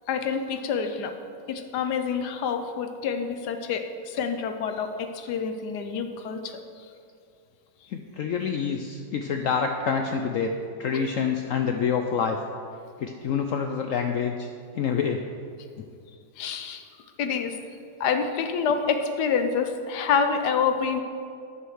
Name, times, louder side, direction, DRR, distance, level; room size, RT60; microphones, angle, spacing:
voice 1, 0.1-1.1 1.5-6.6 16.4-16.8 17.2-17.6 18.0-21.0, left 6 dB, 70° left, 7 dB, 1.2 m, -27 dB
voice 2, 7.9-10.5 10.8-12.4 13.0-14.5 14.7-15.2 15.8-15.9, left 6 dB, 90° left, 4 dB, 0.7 m, -27 dB
9.7 x 5.6 x 6.2 m, 2.4 s
omnidirectional pair, 1.9 m